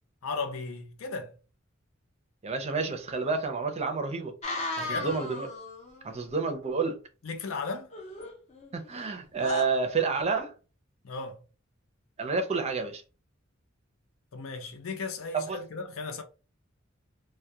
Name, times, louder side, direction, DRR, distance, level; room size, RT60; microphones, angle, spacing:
voice 1, 0.2-1.3 4.8-5.2 7.2-7.9 11.0-11.4 14.3-16.2, left 4 dB, 80° left, 0.5 m, -36 dB
voice 2, 2.4-4.3 4.8-5.5 6.0-7.0 8.7-10.5 12.2-13.0 15.3-15.6, right 4 dB, 30° right, 0.5 m, -29 dB
sound 1, 4.4-6.0 7.9-9.1 9.4-9.6, left 2 dB, 35° left, 0.6 m, -35 dB
2.2 x 2.1 x 2.7 m
head